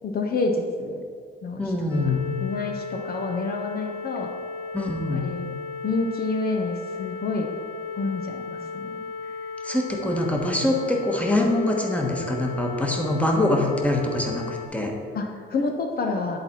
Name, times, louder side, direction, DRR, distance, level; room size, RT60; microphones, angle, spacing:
voice 1, 0.0-1.1 1.4-1.7 2.4-4.3 5.1-5.5 5.8-7.5 7.9-9.1 15.1-16.4, left 3 dB, 50° left, 2 dB, 0.8 m, -28 dB
voice 2, 1.6-2.3 4.7-5.3 9.6-15.0, left 1 dB, 5° left, 1 dB, 1.2 m, -24 dB
sound 1, 1.9-14.7, left 4 dB, 85° left, 1.3 m, -35 dB
10.5 x 4.2 x 4.4 m, 2.1 s
cardioid pair, 90°, 20 cm